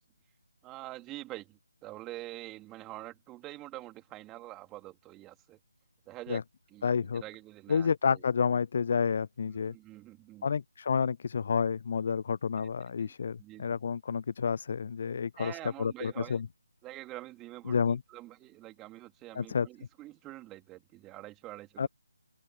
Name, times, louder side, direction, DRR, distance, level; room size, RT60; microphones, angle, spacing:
voice 1, 0.6-5.6 6.0-6.4 6.7-8.2 9.5-10.5 12.6-12.7 13.0-13.1 13.4-13.8 15.4-16.4 16.8-21.9, right 17 dB, 15° right, 3.3 m, -46 dB
voice 2, 6.8-7.2 7.7-9.7 10.4-16.5 17.7-18.0 19.3-19.7 21.8-21.9, left 6 dB, 45° left, 0.3 m, -30 dB
figure-of-eight pair, 155°, 0 cm